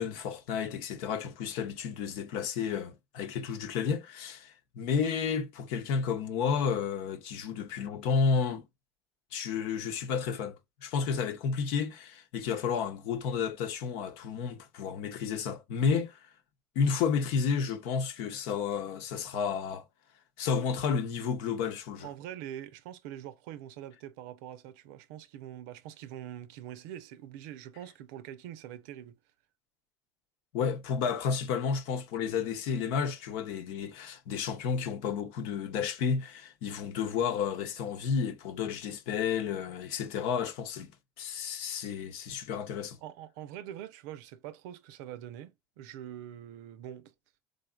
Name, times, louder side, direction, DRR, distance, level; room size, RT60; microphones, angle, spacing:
voice 1, 0.0-8.7 9.3-16.1 16.7-19.8 20.4-22.1 30.5-40.9 41.2-43.0, left 6 dB, 70° left, 0.9 m, -31 dB
voice 2, 22.0-29.2 43.0-47.1, right 11 dB, 75° right, 0.6 m, -44 dB
3.9 x 3.5 x 2.3 m
supercardioid pair, 85°, 9 cm